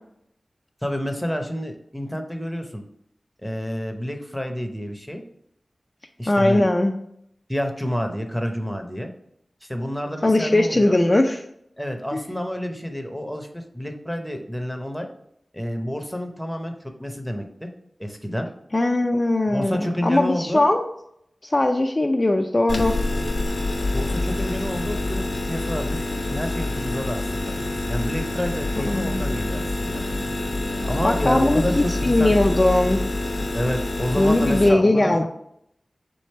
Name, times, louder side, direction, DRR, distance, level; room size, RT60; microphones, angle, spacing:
voice 1, 0.8-2.8 3.4-5.2 6.2-6.6 7.5-9.1 9.6-11.0 11.8-15.1 15.5-17.7 18.0-18.5 19.5-20.6 23.9-27.5 27.9-30.0 30.8-32.4 33.5-35.3, equal, 5° left, 4 dB, 0.7 m, -29 dB
voice 2, 6.3-6.9 10.2-11.4 12.1-12.2 18.7-20.8 21.4-23.0 28.8-29.3 31.0-33.0 34.2-35.3, left 2 dB, 35° left, 3 dB, 0.3 m, -20 dB
sound 1, 22.7-34.7, left 2 dB, 65° left, 0.7 m, -26 dB
3.8 x 3.3 x 4.2 m, 0.73 s
wide cardioid pair, 65°, 0 cm